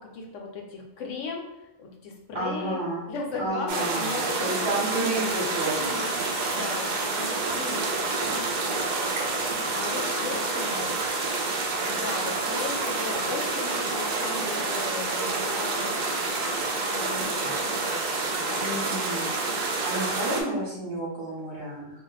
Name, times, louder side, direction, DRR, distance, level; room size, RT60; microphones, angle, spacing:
voice 1, 0.0-2.8 3.1-4.8 5.8-6.1 6.4-11.0 11.8-15.9 16.9-18.6, left 3 dB, 75° left, 0 dB, 0.9 m, -37 dB
voice 2, 2.3-3.1 3.4-5.8 6.1-6.3 18.6-22.0, right 2 dB, 50° right, -5 dB, 0.9 m, -31 dB
sound 1, 3.7-20.4, right 3 dB, 75° right, 0.4 m, -28 dB
2.4 x 2.1 x 3.9 m, 0.94 s
omnidirectional pair, 1.3 m